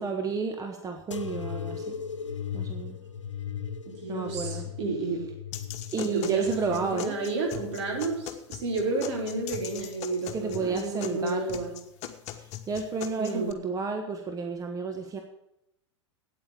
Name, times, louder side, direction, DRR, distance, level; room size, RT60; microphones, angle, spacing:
voice 1, 0.0-2.0 2.5-3.0 4.1-4.7 5.9-7.2 10.3-11.5 12.3-15.2, right 4 dB, 25° right, 4 dB, 1.4 m, -31 dB
sound 1, 1.1-8.3 8.8-9.6 10.4-10.9 11.9-12.0, left 7 dB, 85° left, 0.9 m, -38 dB
voice 2, 3.9-5.2 6.0-6.4 6.7-11.7 13.2-13.5, right 3 dB, 65° right, 0 dB, 4.3 m, -31 dB
sound 2, 5.5-13.5, left 11 dB, 45° left, 1.4 m, -41 dB
9.0 x 8.7 x 8.4 m, 0.83 s
hypercardioid pair, 95°, 15 cm